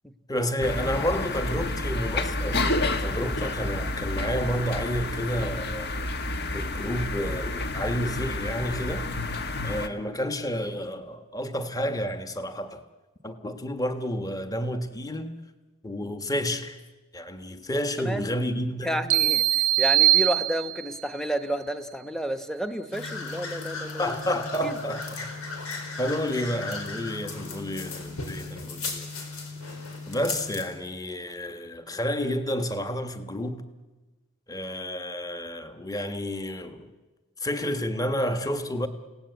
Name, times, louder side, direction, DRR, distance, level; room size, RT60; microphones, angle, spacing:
voice 1, 0.3-6.1 6.5-9.1 9.6-12.8 13.2-15.4 15.8-16.8 17.1-19.0 24.0-25.3 26.0-29.1 30.1-33.6 34.5-36.9 37.4-38.9, equal, 15° left, 1.4 m, -30 dB
sound 1, 0.6-9.9, left 2 dB, 50° left, 1.3 m, -30 dB
voice 2, 18.0-18.3 18.8-24.2 24.6-24.8, equal, ahead, 1.1 m, -31 dB
sound 2, 19.1-21.0, right 14 dB, 90° right, 0.9 m, -22 dB
sound 3, 22.9-30.6, left 3 dB, 90° left, 4.5 m, -36 dB
29.5 x 17.5 x 8.3 m
head